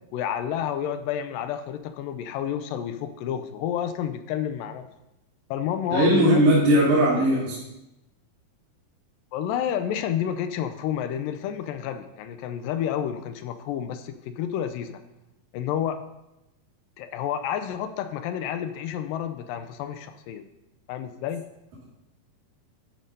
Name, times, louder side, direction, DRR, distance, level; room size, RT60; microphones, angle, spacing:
voice 1, 0.1-4.8 5.5-6.5 9.3-15.0 15.5-16.0 17.0-20.5 20.9-21.4, left 9 dB, 80° left, 9 dB, 2.1 m, -30 dB
voice 2, 5.9-7.6, right 1 dB, 70° right, -9 dB, 3.7 m, -19 dB
12.0 x 4.9 x 5.3 m, 0.92 s
omnidirectional pair, 4.1 m